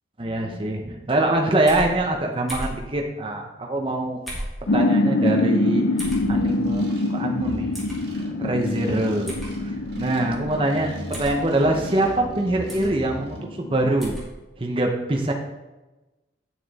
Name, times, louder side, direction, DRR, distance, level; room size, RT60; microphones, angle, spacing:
voice 1, 0.2-4.3 4.7-6.8 7.1-7.7 8.4-14.2 14.6-15.3, right 1 dB, 30° right, 2 dB, 0.8 m, -24 dB
sound 1, 1.7-1.9 2.5-2.8 4.3-4.6 6.0-6.2 7.7-8.0 9.3-9.5 11.1-11.4 12.7-12.9 14.0-14.3, right 1 dB, ahead, 2.3 m, -33 dB
sound 2, 4.7-13.9, left 2 dB, 90° left, 0.6 m, -25 dB
sound 3, 6.0-13.4, equal, 55° right, 1.8 m, -40 dB
9.2 x 6.4 x 4.1 m, 1.1 s
head